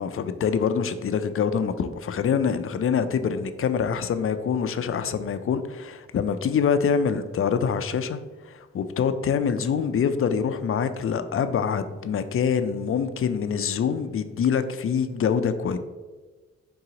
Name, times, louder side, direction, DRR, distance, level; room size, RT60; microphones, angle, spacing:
voice 1, 0.0-15.8, left 6 dB, 50° left, 10 dB, 0.4 m, -25 dB
3.9 x 2.9 x 3.8 m, 1.3 s
cardioid pair, 55°, 29 cm